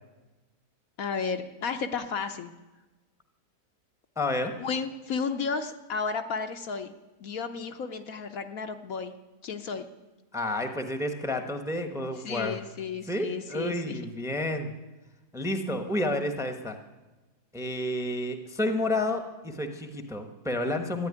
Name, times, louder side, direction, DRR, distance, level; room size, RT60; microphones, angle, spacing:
voice 1, 1.0-2.5 4.6-6.9 7.2-9.1 9.4-9.9 12.2-14.0, left 5 dB, 65° left, 7 dB, 1.2 m, -33 dB
voice 2, 4.2-4.5 10.3-12.6 13.1-14.7 15.3-16.8 17.5-21.1, left 1 dB, ahead, 7 dB, 1.0 m, -30 dB
14.0 x 10.0 x 9.6 m, 1.1 s
omnidirectional pair, 1.7 m